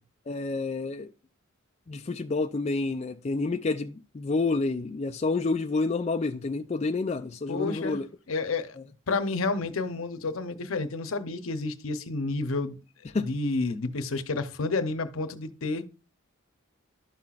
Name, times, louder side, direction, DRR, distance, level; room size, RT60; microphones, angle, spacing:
voice 1, 0.3-1.1 1.9-8.1 8.8-8.9 13.1-13.3, left 3 dB, 30° left, 0.3 m, -29 dB
voice 2, 7.5-8.0 8.3-8.8 9.1-12.8 13.2-15.8, left 3 dB, 80° left, 0.8 m, -30 dB
11.5 x 5.8 x 2.4 m
head